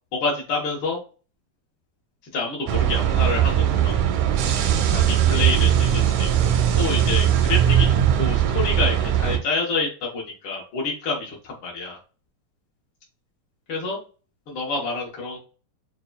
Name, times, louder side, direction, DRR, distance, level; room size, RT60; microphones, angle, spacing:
voice 1, 0.1-1.0 2.3-4.0 4.9-6.5 6.8-12.0 13.7-14.0 14.5-15.4, left 3 dB, 70° left, -3 dB, 1.1 m, -28 dB
sound 1, 2.7-9.4, right 10 dB, 90° right, 2.1 m, -20 dB
6.6 x 2.2 x 2.2 m, 0.35 s
omnidirectional pair, 3.5 m